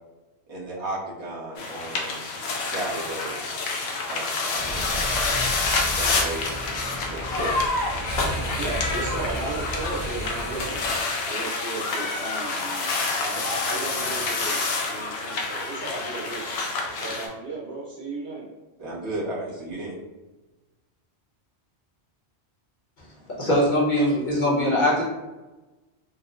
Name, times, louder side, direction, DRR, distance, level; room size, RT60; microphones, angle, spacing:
voice 1, 0.5-3.4 4.1-5.6 5.9-6.5 7.1-7.8 13.3-13.4 18.8-20.0, right 2 dB, 25° right, -8 dB, 0.8 m, -34 dB
sound 1, 1.6-17.3, left 3 dB, 70° left, 0.8 m, -28 dB
sound 2, 4.5-11.0, equal, 10° left, 1.0 m, -33 dB
voice 2, 8.1-10.8 11.2-14.6 14.9-16.4 17.0-18.4, right 3 dB, 90° right, -4 dB, 1.3 m, -35 dB
voice 3, 23.4-25.0, equal, 50° left, -6 dB, 1.0 m, -21 dB
4.0 x 2.1 x 2.4 m, 1.1 s
omnidirectional pair, 1.1 m